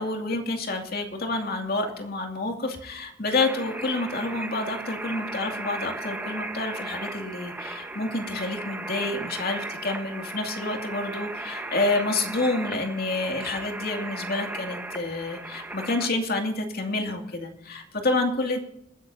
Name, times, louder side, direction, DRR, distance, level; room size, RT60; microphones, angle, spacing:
voice 1, 0.0-18.6, left 2 dB, 50° left, 3 dB, 2.5 m, -28 dB
sound 1, 3.4-16.1, right 2 dB, 10° right, 1.2 m, -36 dB
27.0 x 9.9 x 2.8 m, 0.78 s
head